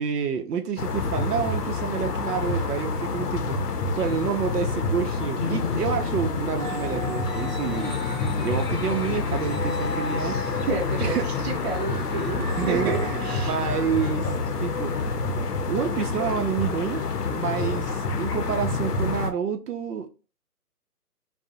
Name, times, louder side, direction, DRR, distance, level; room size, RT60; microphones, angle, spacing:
voice 1, 0.0-3.6 4.0-10.7 11.0-11.3 12.6-14.3 14.6-15.0 15.7-20.1, right 7 dB, 80° right, 0.5 m, -29 dB
sound 1, 0.8-19.3, left 4 dB, 90° left, 0.6 m, -28 dB
sound 2, 5.4-9.3, left 5 dB, 20° left, 0.7 m, -36 dB
sound 3, 6.6-14.1, right 1 dB, 10° right, 0.6 m, -38 dB
voice 2, 10.2-13.5, right 4 dB, 45° right, 0.7 m, -31 dB
2.6 x 2.0 x 2.6 m
hypercardioid pair, 155°, 46 cm